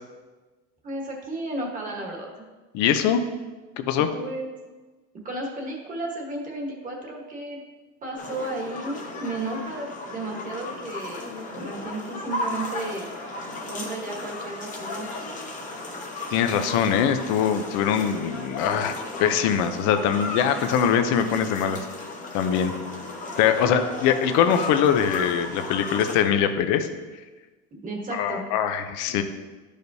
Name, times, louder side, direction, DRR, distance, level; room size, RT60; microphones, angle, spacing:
voice 1, 0.8-2.4 4.1-4.5 5.2-7.6 8.0-11.2 11.5-13.0 13.7-15.1 27.7-28.4, right 2 dB, 25° right, -1 dB, 1.3 m, -33 dB
voice 2, 2.7-3.2 3.8-4.1 16.3-21.9 22.3-22.7 23.4-26.9 28.1-29.2, left 8 dB, 65° left, 8 dB, 0.7 m, -22 dB
sound 1, 8.2-26.2, left 2 dB, 25° left, 1.0 m, -35 dB
12.0 x 5.0 x 2.7 m, 1.3 s
cardioid pair, 165°, 32 cm